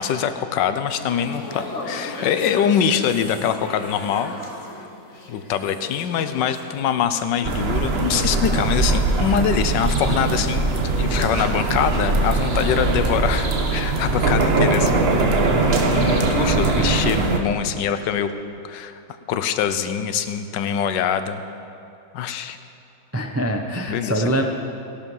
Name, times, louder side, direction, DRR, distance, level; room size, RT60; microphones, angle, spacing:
voice 1, 0.0-4.4 5.3-15.0 15.9-18.3 18.6-19.0 19.3-21.4 22.1-22.6 23.9-24.5, left 8 dB, 85° left, 10 dB, 1.4 m, -24 dB
sound 1, 0.9-7.2 7.5-7.7, left 2 dB, 45° left, 1.8 m, -37 dB
sound 2, 7.5-17.4, right 3 dB, 40° right, 1.2 m, -21 dB
voice 2, 23.1-24.5, right 1 dB, 20° right, 3 dB, 0.4 m, -23 dB
17.5 x 11.5 x 5.5 m, 2.7 s
omnidirectional pair, 1.9 m